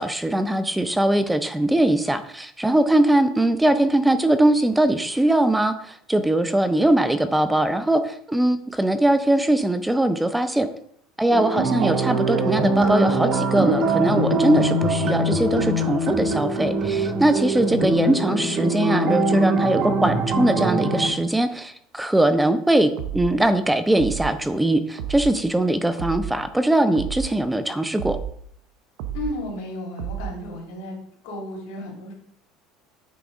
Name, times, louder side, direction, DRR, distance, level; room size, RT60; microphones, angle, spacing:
voice 1, 0.0-10.7 11.2-28.2, right 1 dB, 5° right, 10 dB, 0.5 m, -21 dB
sound 1, 11.3-21.1, right 2 dB, 55° right, 1.9 m, -23 dB
sound 2, 23.0-23.4 24.0-24.4 25.0-25.4 26.0-26.4 26.9-27.4 28.0-28.4 29.0-29.4 30.0-30.4, right 9 dB, 75° right, 0.9 m, -31 dB
voice 2, 29.1-31.0 31.2-32.1, left 1 dB, 75° left, 0 dB, 2.6 m, -33 dB
8.5 x 3.5 x 5.2 m, 0.67 s
supercardioid pair, 115°, 0 cm